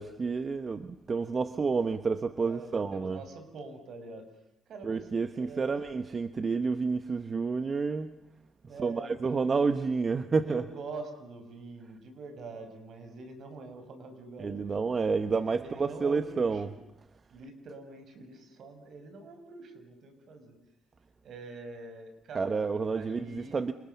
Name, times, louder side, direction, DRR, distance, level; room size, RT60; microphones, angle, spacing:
voice 1, 0.0-3.2 4.8-8.1 8.8-10.6 14.4-16.7 22.3-23.7, right 4 dB, 35° right, 11 dB, 1.2 m, -29 dB
voice 2, 2.4-4.4 4.7-6.0 8.6-9.7 10.4-14.8 15.6-16.8 17.3-20.6 21.2-22.5 22.9-23.7, right 3 dB, 65° right, 7 dB, 6.4 m, -45 dB
29.5 x 28.5 x 7.1 m, 0.86 s
cardioid pair, 90°, 0 cm